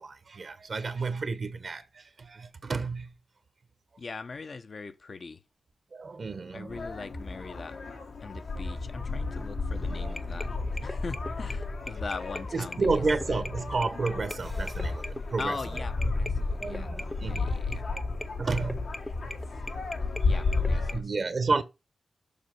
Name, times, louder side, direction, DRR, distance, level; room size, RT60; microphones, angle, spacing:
voice 1, 0.0-3.1 5.9-6.8 9.9-10.2 12.5-15.6 16.6-17.5 18.4-18.9 20.2-20.4 20.8-21.6, right 4 dB, 60° right, 1.1 m, -31 dB
voice 2, 4.0-5.4 6.5-7.8 8.2-10.5 10.8-13.4 15.4-16.9 17.2-17.8 20.2-21.1, left 4 dB, 60° left, 0.9 m, -41 dB
sound 1, 6.7-21.0, left 3 dB, 80° left, 1.8 m, -32 dB
sound 2, 10.1-20.9, left 1 dB, 20° left, 0.8 m, -42 dB
7.2 x 5.5 x 5.3 m
cardioid pair, 50°, 0 cm